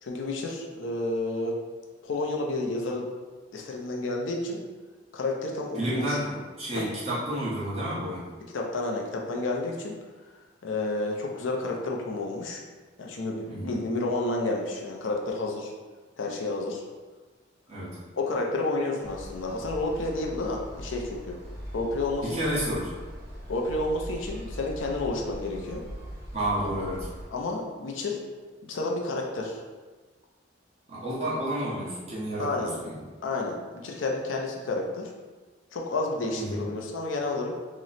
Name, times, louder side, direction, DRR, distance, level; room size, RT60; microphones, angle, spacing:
voice 1, 0.0-1.5 2.0-3.1 3.5-4.6 5.1-6.2 6.7-6.9 8.5-9.9 10.6-12.6 13.0-15.7 16.2-16.8 18.2-21.4 21.7-22.4 23.5-25.8 26.5-26.7 27.3-28.2 28.7-29.6 32.4-32.7 33.2-35.1 35.7-37.5, left 2 dB, 80° left, 0 dB, 0.5 m, -30 dB
voice 2, 5.8-8.2 13.5-13.8 17.7-18.0 22.2-23.0 26.3-27.1 30.9-33.0 36.4-36.6, right 1 dB, 35° right, -8 dB, 1.0 m, -30 dB
sound 1, 19.0-27.3, equal, 55° right, 0.8 m, -41 dB
3.0 x 2.0 x 3.9 m, 1.3 s
head